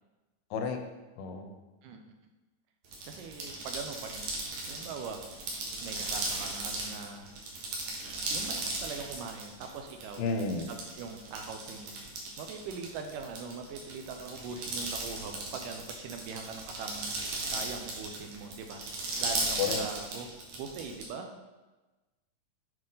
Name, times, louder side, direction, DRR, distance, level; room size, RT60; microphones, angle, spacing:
voice 1, 0.5-0.8 1.2-1.6 10.2-10.7 19.6-19.8, left 5 dB, 80° left, 5 dB, 2.3 m, -31 dB
sound 1, 2.9-21.0, right 2 dB, 65° right, 2.5 m, -36 dB
voice 2, 3.1-5.2 5.8-7.3 8.3-10.3 10.7-12.0 12.4-20.3 20.5-21.4, right 5 dB, 80° right, 4 dB, 2.1 m, -42 dB
8.4 x 5.0 x 3.8 m, 1.2 s
omnidirectional pair, 4.0 m